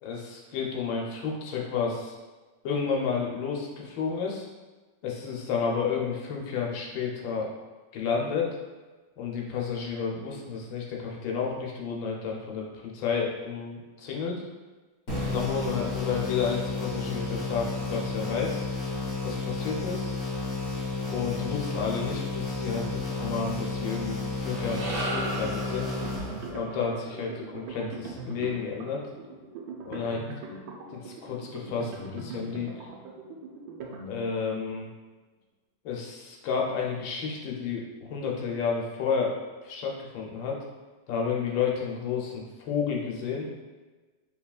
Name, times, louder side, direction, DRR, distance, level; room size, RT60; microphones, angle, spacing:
voice 1, 0.0-2.1 2.6-4.5 5.0-7.5 7.9-8.5 9.2-14.4 15.3-18.7 19.2-20.2 21.1-25.9 26.5-29.0 29.8-30.3 30.9-32.9 34.0-34.9 35.8-39.4 39.6-40.6 41.1-43.5, left 6 dB, 85° left, -1 dB, 1.5 m, -31 dB
sound 1, 15.1-26.8, left 3 dB, 55° left, 1.7 m, -32 dB
sound 2, 24.3-28.7, right 1 dB, 65° right, 1.5 m, -37 dB
sound 3, 26.0-34.6, right 3 dB, 85° right, 1.4 m, -41 dB
4.7 x 3.5 x 2.4 m, 1.3 s
omnidirectional pair, 2.0 m